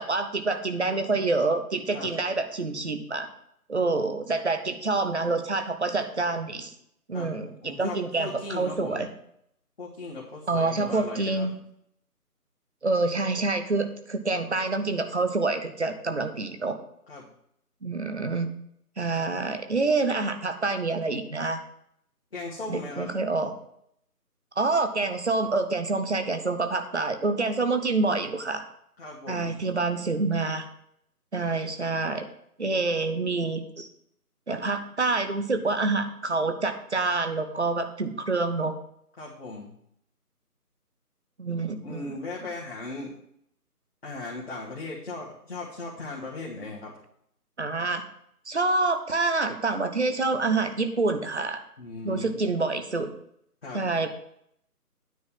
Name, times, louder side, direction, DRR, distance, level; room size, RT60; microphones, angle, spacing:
voice 1, 0.0-3.3 3.7-6.7 7.1-9.1 10.5-11.5 12.8-16.8 17.8-18.5 19.0-21.6 22.7-23.5 24.6-28.6 29.3-30.7 31.3-32.3 32.6-33.9 34.5-38.8 41.4-42.0 47.6-48.0 48.5-51.6 52.0-53.1 53.7-54.1, right 3 dB, 45° right, 7 dB, 0.9 m, -27 dB
voice 2, 7.6-9.1 9.8-11.5 17.1-17.3 22.3-23.1 29.0-29.6 39.2-39.7 41.8-43.1 44.0-47.0 51.8-52.4 53.6-53.9, left 3 dB, 40° left, -4 dB, 1.5 m, -38 dB
9.4 x 4.1 x 6.9 m, 0.72 s
figure-of-eight pair, 155°, 47 cm